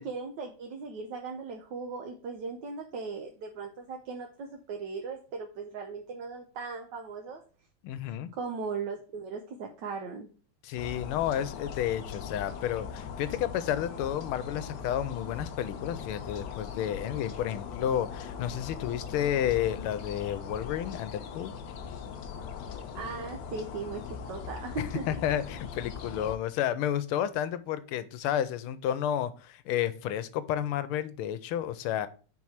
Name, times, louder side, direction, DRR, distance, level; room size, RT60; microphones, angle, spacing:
voice 1, 0.0-7.4 8.3-10.3 22.9-25.1, right 4 dB, 65° right, 2 dB, 1.3 m, -38 dB
voice 2, 7.8-8.3 10.6-21.5 24.8-32.1, left 10 dB, 85° left, 13 dB, 1.5 m, -31 dB
sound 1, 10.8-26.4, left 6 dB, 65° left, 1.2 m, -40 dB
4.8 x 4.5 x 5.6 m, 0.38 s
omnidirectional pair, 2.3 m